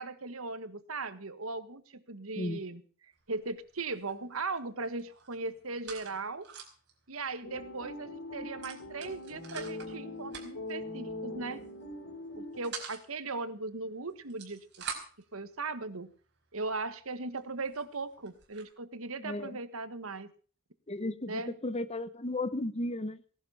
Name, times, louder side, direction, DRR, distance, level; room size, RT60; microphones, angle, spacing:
voice 1, 0.0-2.8 3.3-6.4 7.1-11.6 12.4-14.6 15.3-16.1 16.5-20.3 21.3-21.5, right 3 dB, 75° right, 12 dB, 1.5 m, -38 dB
sound 1, 3.2-3.5 3.8-4.6 4.9-6.9 7.3-7.4 7.6-7.9 8.6-9.9 10.3-10.7 11.5-11.8 12.2-13.0 14.1-15.3 16.0-16.1 16.7-16.8 17.4-17.5 17.7-18.7, right 6 dB, 55° right, 4.9 m, -45 dB
sound 2, 7.4-12.6, left 2 dB, 80° left, 6.6 m, -42 dB
voice 2, 19.2-19.6 20.9-23.2, left 1 dB, 30° left, 14 dB, 1.0 m, -34 dB
18.0 x 11.5 x 5.7 m, 0.41 s
head